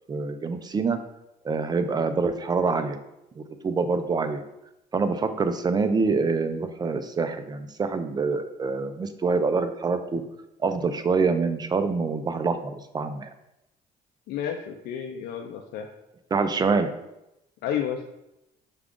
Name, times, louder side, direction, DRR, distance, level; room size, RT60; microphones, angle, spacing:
voice 1, 0.1-1.0 1.4-3.0 3.4-4.4 4.9-10.2 10.6-13.3 16.3-16.9, right 4 dB, 25° right, 9 dB, 0.3 m, -25 dB
voice 2, 14.3-15.9 17.6-18.0, left 9 dB, 75° left, 3 dB, 0.4 m, -31 dB
4.9 x 2.3 x 3.6 m, 0.89 s
cardioid pair, 110°, 17 cm